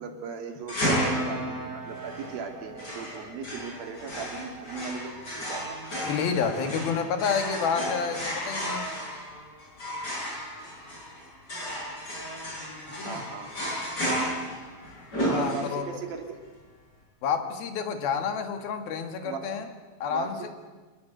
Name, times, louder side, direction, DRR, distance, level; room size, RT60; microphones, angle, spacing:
voice 1, 0.0-5.8 13.0-13.5 15.3-16.4 19.2-19.4 20.1-20.5, right 5 dB, 75° right, 5 dB, 4.1 m, -38 dB
sound 1, 0.7-16.0, equal, 25° left, 6.9 m, -33 dB
voice 2, 6.1-8.9 12.9-13.2 15.3-15.8 17.2-19.7 20.0-20.5, left 6 dB, 80° left, 7 dB, 3.8 m, -29 dB
26.0 x 20.5 x 8.0 m, 1.3 s
omnidirectional pair, 4.2 m